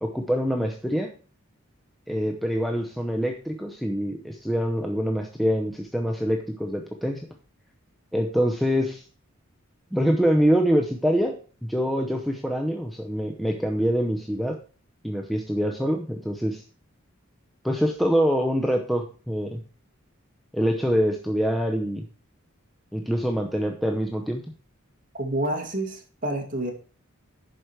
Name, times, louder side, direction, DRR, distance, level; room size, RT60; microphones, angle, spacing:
voice 1, 0.0-1.1 2.1-7.2 8.1-9.0 9.9-14.6 15.0-16.6 17.6-19.6 20.5-22.0 22.9-24.4, equal, ahead, 2 dB, 0.7 m, -25 dB
voice 2, 25.2-26.7, right 1 dB, 40° right, 2 dB, 2.1 m, -28 dB
11.0 x 4.9 x 4.5 m, 0.38 s
head